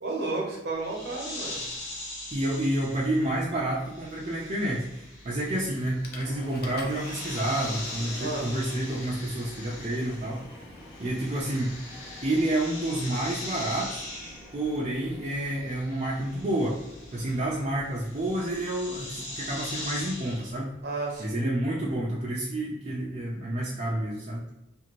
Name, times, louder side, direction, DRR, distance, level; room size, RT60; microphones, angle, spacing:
voice 1, 0.0-1.6 8.2-8.5 20.8-21.4, right 3 dB, 55° right, -2 dB, 0.8 m, -32 dB
sound 1, 0.8-10.5 10.8-20.5, left 2 dB, 70° left, 1.0 m, -41 dB
voice 2, 2.3-10.6 11.0-11.8 12.2-14.0 14.5-16.8 17.1-20.7 21.2-24.4, right 1 dB, 35° right, -5 dB, 0.4 m, -29 dB
Train, 4.4-21.9, left 1 dB, 25° left, 1.1 m, -51 dB
Water / Toilet flush, 5.4-5.6 6.0-13.9, left 2 dB, 55° left, 0.5 m, -47 dB
2.6 x 2.5 x 3.0 m, 0.89 s
head